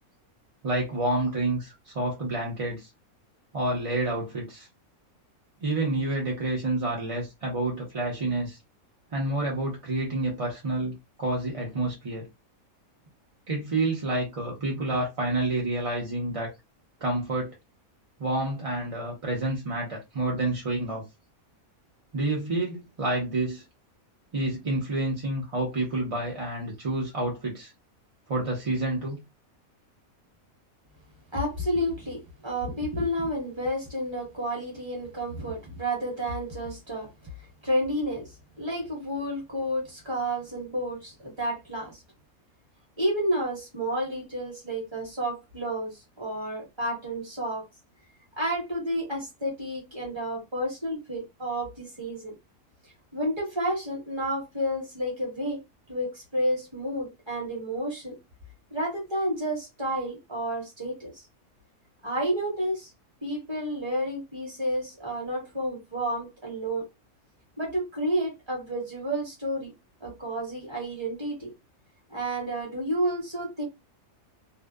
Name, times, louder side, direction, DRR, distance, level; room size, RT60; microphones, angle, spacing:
voice 1, 0.6-2.9 3.5-4.7 5.6-8.6 9.1-12.3 13.5-16.5 17.0-17.5 18.2-21.0 22.1-23.6 24.3-27.7 28.3-29.2, right 2 dB, 40° right, 0.5 m, -29 dB
voice 2, 31.3-37.1 37.6-42.0 43.0-47.6 48.4-52.3 53.1-55.6 55.9-58.2 58.7-61.3 62.0-62.9 63.2-66.9 67.6-69.7 70.0-71.5 72.1-73.6, equal, 20° right, 1.1 m, -30 dB
2.6 x 2.1 x 2.2 m
omnidirectional pair, 1.5 m